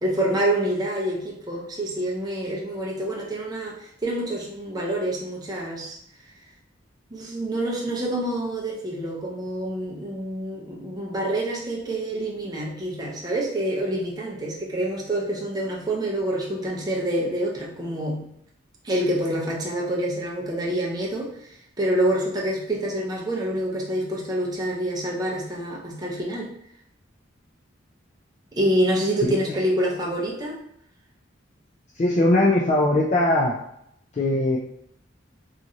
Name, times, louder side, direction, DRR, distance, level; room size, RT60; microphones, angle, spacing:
voice 1, 0.0-6.0 7.1-18.3 18.8-21.3 21.8-26.5 28.5-30.6, right 1 dB, 20° right, -3 dB, 0.5 m, -27 dB
voice 2, 32.0-33.6 34.1-34.6, left 1 dB, 35° left, -3 dB, 0.3 m, -20 dB
2.9 x 2.4 x 2.5 m, 0.73 s
head